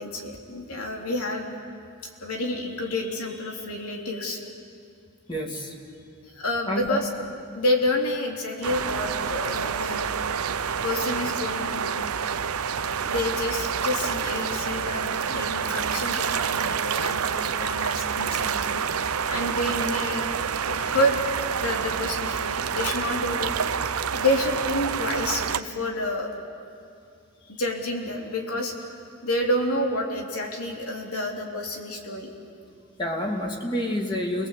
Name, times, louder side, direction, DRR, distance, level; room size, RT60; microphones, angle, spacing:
voice 1, 0.0-1.5 2.2-4.4 6.3-7.1 7.5-10.0 10.8-11.9 13.0-19.0 19.3-21.2 21.6-26.3 27.5-28.9 29.2-32.3, left 1 dB, 85° left, 1 dB, 3.3 m, -29 dB
voice 2, 5.3-5.7 6.7-7.0 33.0-34.5, left 1 dB, 20° left, 1 dB, 2.5 m, -28 dB
sound 1, 8.6-25.6, right 7 dB, 85° right, 0.8 m, -28 dB
28.5 x 21.5 x 8.3 m, 2.4 s
head